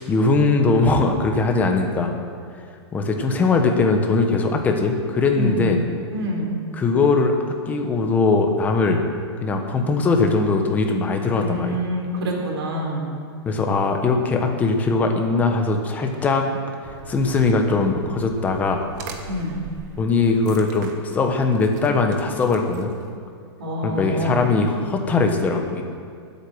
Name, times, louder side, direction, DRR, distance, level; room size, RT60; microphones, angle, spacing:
voice 1, 0.0-2.1 2.9-5.8 6.7-7.3 7.7-9.0 9.4-11.8 13.5-16.5 16.8-18.8 20.0-22.9 23.8-25.8, left 3 dB, 10° left, 4 dB, 1.1 m, -20 dB
voice 2, 5.3-5.7 6.1-6.6 11.4-13.1 19.3-19.6 23.6-24.5, equal, 65° right, 0 dB, 3.8 m, -26 dB
sound 1, 16.8-23.2, right 5 dB, 40° right, 1.4 m, -41 dB
19.5 x 8.5 x 6.3 m, 2.2 s
supercardioid pair, 170°, 14 cm